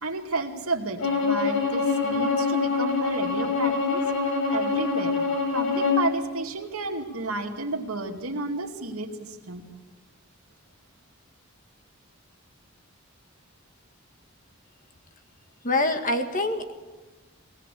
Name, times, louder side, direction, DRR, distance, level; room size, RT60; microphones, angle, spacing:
voice 1, 0.0-5.2 5.5-9.7, right 2 dB, 80° right, 3 dB, 2.5 m, -32 dB
Bowed string instrument, 1.0-6.1, left 4 dB, 75° left, 6.8 m, -25 dB
voice 2, 15.6-16.7, left 2 dB, 35° left, 6 dB, 2.0 m, -25 dB
22.5 x 18.5 x 8.5 m, 1.3 s
head